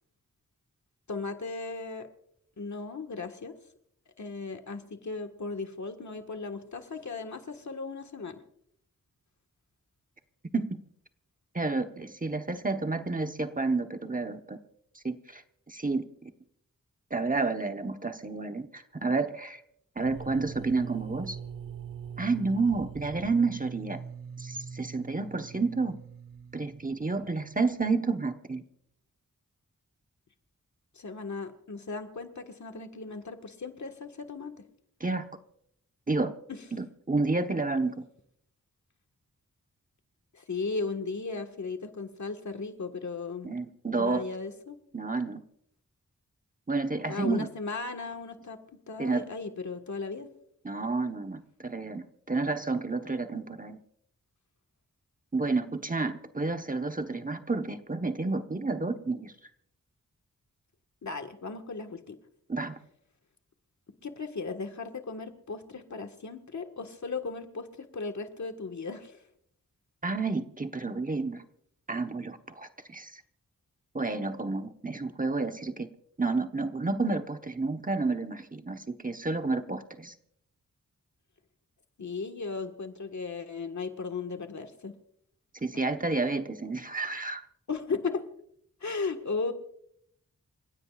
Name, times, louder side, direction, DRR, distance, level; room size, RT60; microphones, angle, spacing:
voice 1, 1.1-2.1 2.6-3.5 4.2-8.4 31.0-34.7 36.5-36.6 40.3-43.5 44.0-44.8 47.1-48.6 48.9-50.3 61.0-62.2 64.0-69.2 82.0-84.9 87.7-88.3 88.8-89.5, left 4 dB, 60° left, 5 dB, 1.6 m, -36 dB
voice 2, 11.5-14.6 15.0-15.4 15.7-16.0 17.1-19.6 20.0-21.4 22.2-24.0 24.4-26.0 26.5-28.6 35.0-35.2 36.1-36.3 36.7-38.0 43.4-44.2 44.9-45.4 46.7-47.5 49.0-49.2 50.6-53.8 55.3-59.3 62.5-62.8 70.0-71.4 71.9-73.2 73.9-75.9 76.2-80.1 85.6-87.4, right 3 dB, 25° right, 6 dB, 1.1 m, -30 dB
sound 1, 20.0-27.7, right 7 dB, 90° right, 1.3 m, -43 dB
28.5 x 16.0 x 2.4 m, 0.70 s
wide cardioid pair, 70°, 33 cm